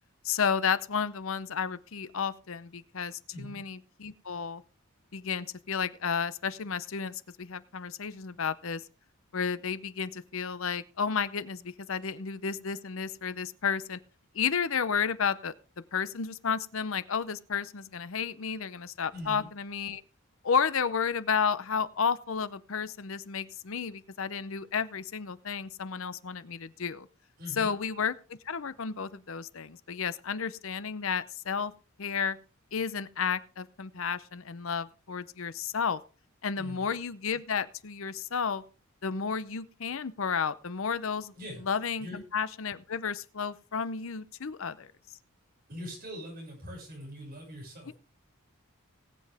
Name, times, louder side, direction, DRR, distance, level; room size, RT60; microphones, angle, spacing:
voice 1, 0.2-4.6 5.1-8.8 9.3-14.0 14.3-15.5 15.9-20.0 20.4-27.1 27.6-28.1 28.5-31.7 32.0-32.4 32.7-36.0 36.4-38.6 39.0-41.3 41.7-44.9 47.9-48.0, left 6 dB, 65° left, 15 dB, 0.7 m, -32 dB
voice 2, 19.1-19.5 27.4-27.8 36.6-36.9 41.3-41.6 42.0-42.2 45.7-47.9, equal, 40° right, -2 dB, 6.8 m, -42 dB
19.5 x 7.7 x 3.5 m, 0.35 s
head